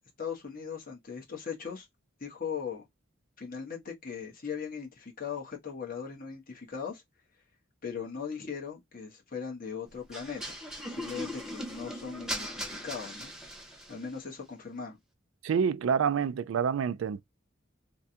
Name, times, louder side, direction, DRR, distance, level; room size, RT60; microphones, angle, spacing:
voice 1, 0.0-1.9 2.2-2.8 3.4-7.0 7.8-10.4 10.9-13.3 13.9-15.0, left 6 dB, 45° left, 1.2 m, -39 dB
sound 1, 10.1-14.0, equal, 5° right, 0.9 m, -39 dB
voice 2, 15.4-17.2, right 7 dB, 70° right, 0.3 m, -27 dB
3.4 x 2.2 x 2.7 m
head